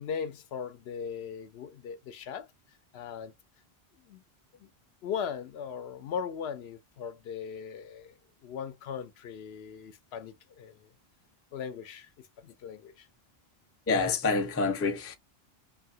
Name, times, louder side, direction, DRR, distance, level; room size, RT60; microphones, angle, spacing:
voice 1, 0.0-2.5 2.9-3.3 4.1-4.2 4.6-4.7 5.0-8.1 8.4-10.9 11.5-12.1 12.4-13.1, left 7 dB, 80° left, 0.8 m, -38 dB
voice 2, 13.9-15.1, left 4 dB, 20° left, 0.4 m, -27 dB
2.7 x 2.7 x 2.6 m
omnidirectional pair, 1.1 m